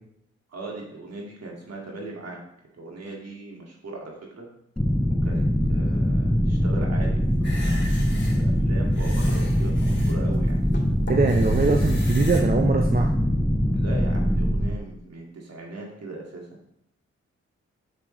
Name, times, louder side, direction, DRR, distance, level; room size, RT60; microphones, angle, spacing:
voice 1, 0.5-2.4 2.7-4.5 5.2-7.6 8.3-10.6 11.5-11.8 13.7-16.7, right 2 dB, 60° right, -1 dB, 2.3 m, -39 dB
sound 1, 4.8-14.8, equal, 5° left, 0.6 m, -22 dB
sound 2, 7.3-12.4, left 2 dB, 40° left, 2.4 m, -37 dB
voice 2, 11.1-13.1, right 4 dB, 30° right, 2 dB, 0.9 m, -22 dB
7.0 x 6.6 x 3.3 m, 0.76 s
supercardioid pair, 45°, 29 cm